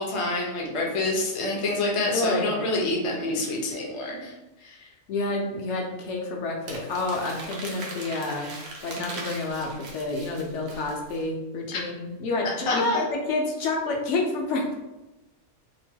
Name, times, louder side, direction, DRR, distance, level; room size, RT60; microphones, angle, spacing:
voice 1, 0.0-4.3 4.6-4.9 11.7-11.8 12.4-13.0, left 2 dB, 45° left, -1 dB, 0.4 m, -27 dB
voice 2, 2.1-2.6 5.1-8.5 8.8-14.7, left 2 dB, 75° left, 1 dB, 0.9 m, -29 dB
Crumpling crinkling, 6.7-11.2, right 3 dB, 80° right, 1.0 m, -40 dB
3.0 x 2.1 x 2.7 m, 1.0 s
omnidirectional pair, 1.3 m